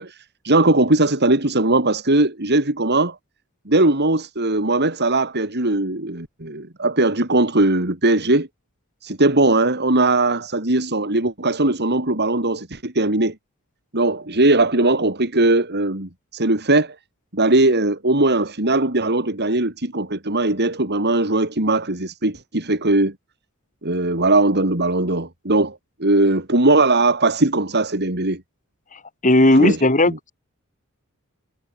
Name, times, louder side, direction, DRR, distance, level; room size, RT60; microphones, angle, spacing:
voice 1, 0.0-3.2 3.7-8.5 9.0-13.3 13.9-16.9 17.3-23.1 23.8-28.4 29.5-29.8, right 2 dB, 50° right, 4.4 m, -19 dB
voice 2, 28.9-30.3, left 1 dB, 35° left, 4.9 m, -16 dB
head